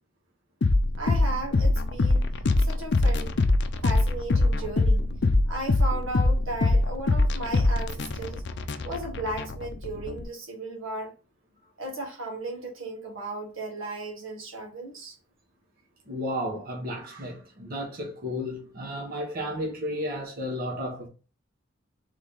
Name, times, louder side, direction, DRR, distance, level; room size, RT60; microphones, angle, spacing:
sound 1, 0.6-10.2, left 2 dB, 60° left, 0.5 m, -24 dB
voice 1, 1.0-2.3 2.6-3.3 3.8-5.1 5.5-8.4 8.8-11.1 11.8-15.2, right 2 dB, 85° right, 1.8 m, -35 dB
voice 2, 16.1-21.1, equal, 50° right, 1.2 m, -33 dB
4.0 x 3.5 x 3.5 m
head